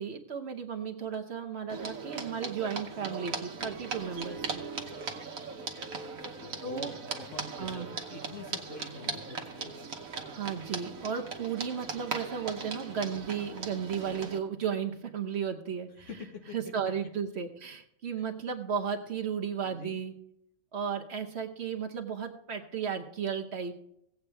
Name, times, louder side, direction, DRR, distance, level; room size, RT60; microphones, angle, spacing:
voice 1, 0.0-4.6 6.6-6.9 7.6-7.9 10.3-16.1 16.5-20.1 20.7-23.8, right 7 dB, 55° right, 5 dB, 1.1 m, -34 dB
sound 1, 1.7-14.4, right 4 dB, 75° right, 1.4 m, -39 dB
voice 2, 6.4-9.7 16.0-16.7 18.2-18.3 19.6-20.0, left 3 dB, 65° left, 3 dB, 1.7 m, -46 dB
17.0 x 8.1 x 3.4 m, 0.74 s
omnidirectional pair, 1.4 m